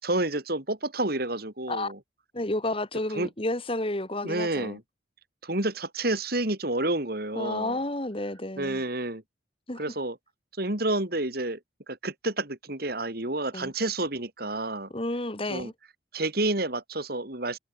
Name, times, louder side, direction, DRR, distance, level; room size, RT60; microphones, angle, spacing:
voice 1, 0.0-2.0 3.1-3.3 4.2-4.8 5.4-7.8 8.6-9.2 9.8-10.2 10.6-11.6 11.9-14.9 15.5-15.7 16.1-17.6, right 2 dB, 50° right, 3.4 m, -29 dB
voice 2, 2.3-4.8 7.4-8.8 9.7-9.8 13.5-13.7 14.9-15.7, left 1 dB, 30° left, 2.3 m, -31 dB
head